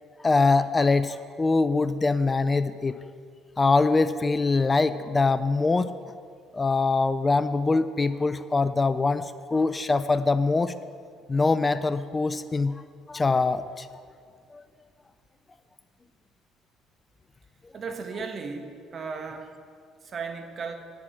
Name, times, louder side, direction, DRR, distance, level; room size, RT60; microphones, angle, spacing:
voice 1, 0.2-3.0 3.6-5.9 6.5-10.7 11.3-12.8 13.1-13.9 14.5-14.6, left 3 dB, 25° left, 13 dB, 0.4 m, -23 dB
voice 2, 17.7-19.5 20.0-20.7, right 5 dB, 45° right, 6 dB, 1.3 m, -35 dB
8.3 x 7.5 x 7.8 m, 2.2 s
supercardioid pair, 75°, 0 cm